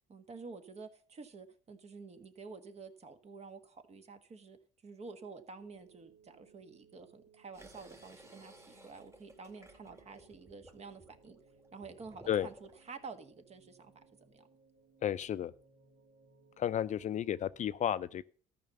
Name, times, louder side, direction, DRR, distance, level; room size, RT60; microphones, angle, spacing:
voice 1, 0.1-4.6 4.8-11.4 11.7-14.5, right 4 dB, 40° right, 1.5 m, -50 dB
sound 1, 5.6-17.7, right 5 dB, 75° right, 2.1 m, -65 dB
sound 2, 7.5-12.9, right 1 dB, 15° right, 2.1 m, -58 dB
voice 2, 15.0-15.5 16.6-18.2, left 10 dB, 45° left, 0.5 m, -32 dB
13.0 x 5.7 x 6.9 m
cardioid pair, 110°, 17 cm